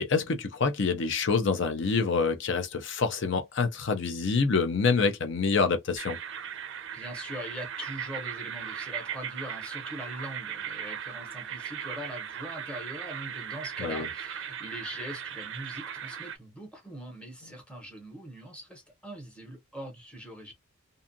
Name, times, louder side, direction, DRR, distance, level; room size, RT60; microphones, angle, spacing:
voice 1, 0.0-6.2 13.8-14.1, left 4 dB, 60° left, 0.5 m, -26 dB
sound 1, 6.0-16.4, right 8 dB, 60° right, 0.4 m, -38 dB
voice 2, 6.9-20.5, equal, 5° left, 0.9 m, -42 dB
2.6 x 2.4 x 2.6 m
head